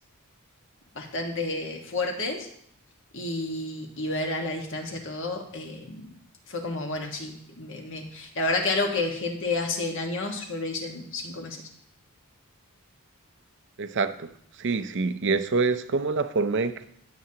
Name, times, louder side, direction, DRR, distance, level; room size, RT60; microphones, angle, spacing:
voice 1, 0.9-2.5 3.1-6.1 6.5-11.6, left 2 dB, 60° left, 2 dB, 1.6 m, -30 dB
voice 2, 13.8-14.3 14.6-16.9, right 4 dB, 55° right, 10 dB, 0.6 m, -26 dB
16.0 x 6.9 x 2.9 m, 0.69 s
head